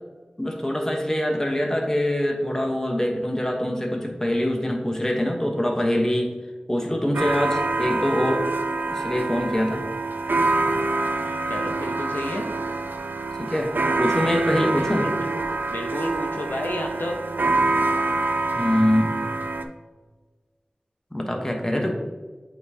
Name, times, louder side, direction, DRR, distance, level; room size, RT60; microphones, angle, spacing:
voice 1, 0.4-6.3 6.7-8.5 8.9-9.8 13.4-15.0 18.6-19.1 21.1-21.9, left 1 dB, 15° left, 2 dB, 1.0 m, -24 dB
sound 1, 7.1-19.6, right 2 dB, 90° right, 0.4 m, -26 dB
voice 2, 11.5-12.5 14.7-17.2, left 1 dB, 80° left, 2 dB, 0.7 m, -31 dB
8.3 x 4.1 x 2.8 m, 1.3 s
wide cardioid pair, 45°, 3 cm